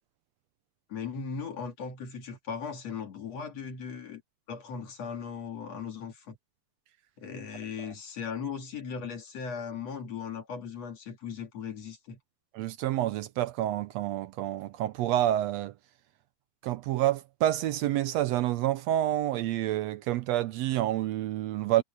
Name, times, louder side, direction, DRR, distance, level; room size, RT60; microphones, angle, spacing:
voice 1, 0.9-4.2 4.5-6.4 7.2-12.2, left 6 dB, 55° left, 3.5 m, -38 dB
voice 2, 12.5-15.7 16.6-21.8, right 13 dB, 80° right, 1.5 m, -28 dB
omnidirectional pair, 3.6 m